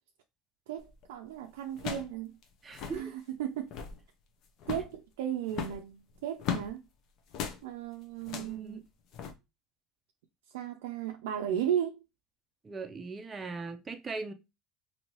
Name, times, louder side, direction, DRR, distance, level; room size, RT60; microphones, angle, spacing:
voice 1, 0.7-2.3 2.9-3.7 4.7-6.8 7.6-8.8 10.5-12.0, right 10 dB, 90° right, 0.3 m, -35 dB
sound 1, 0.8-1.0 1.7-2.2 2.4-2.5 2.7-3.0 3.5-4.0 4.6-5.0 5.5-6.7 7.3-7.6 8.2-8.6 9.1-9.3, left 7 dB, 60° left, 0.6 m, -37 dB
voice 2, 2.6-3.1 8.4-8.8 12.6-14.3, right 4 dB, 20° right, 0.5 m, -40 dB
2.9 x 2.6 x 2.9 m
supercardioid pair, 100°, 0 cm